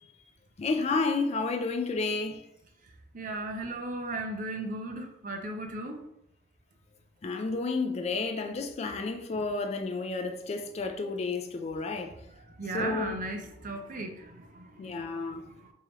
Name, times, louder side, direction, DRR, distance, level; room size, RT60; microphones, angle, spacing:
voice 1, 0.6-2.4 7.2-12.1 12.7-13.1 14.8-15.4, left 3 dB, 35° left, 0.4 m, -31 dB
voice 2, 3.1-6.0 12.3-15.7, right 2 dB, 50° right, 0.6 m, -37 dB
3.6 x 3.0 x 3.1 m
head